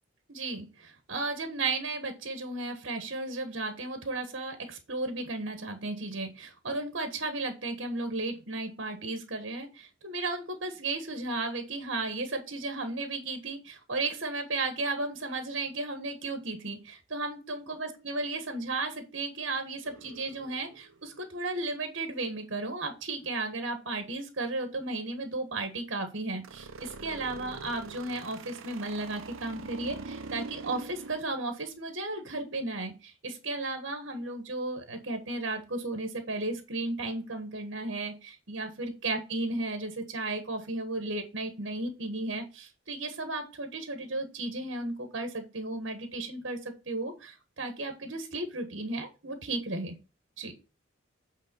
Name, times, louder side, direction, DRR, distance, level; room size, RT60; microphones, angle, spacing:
voice 1, 0.3-46.6 46.9-49.9 50.4-50.5, right 2 dB, 65° right, 6 dB, 1.4 m, -34 dB
sound 1, 19.8-21.4 26.4-31.2, right 3 dB, 85° right, 0.7 m, -44 dB
8.5 x 3.7 x 5.3 m, 0.31 s
head